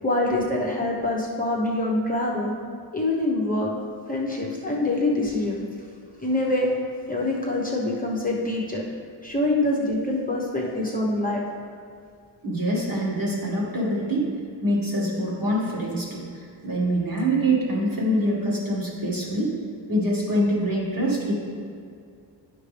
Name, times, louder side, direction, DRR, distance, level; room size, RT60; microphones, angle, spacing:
voice 1, 0.0-2.5 2.9-3.7 4.1-5.6 6.2-6.7 7.1-8.8 9.2-11.4, left 2 dB, 20° left, -3 dB, 1.0 m, -25 dB
voice 2, 12.4-14.3 14.6-16.2 16.6-19.5 19.9-21.3, right 1 dB, 45° right, -5 dB, 1.9 m, -24 dB
9.9 x 5.9 x 3.4 m, 2.3 s
wide cardioid pair, 120°, 45 cm